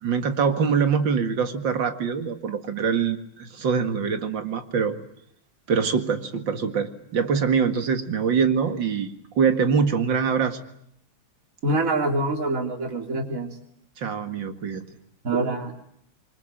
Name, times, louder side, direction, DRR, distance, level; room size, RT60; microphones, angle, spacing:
voice 1, 0.0-5.0 5.7-10.6 14.0-14.8, right 6 dB, 60° right, 8 dB, 2.6 m, -24 dB
voice 2, 11.6-13.5 15.2-15.7, right 2 dB, 35° right, 5 dB, 3.5 m, -25 dB
27.5 x 24.0 x 9.0 m, 0.73 s
omnidirectional pair, 2.4 m